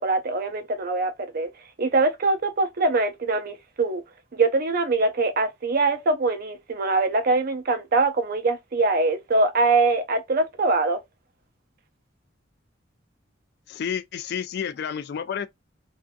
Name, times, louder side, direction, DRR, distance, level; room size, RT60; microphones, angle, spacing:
voice 1, 0.0-1.5 1.8-4.0 4.3-11.0, right 3 dB, 50° right, 0.6 m, -23 dB
voice 2, 13.7-15.5, left 7 dB, 60° left, 0.3 m, -30 dB
2.5 x 2.4 x 2.2 m
head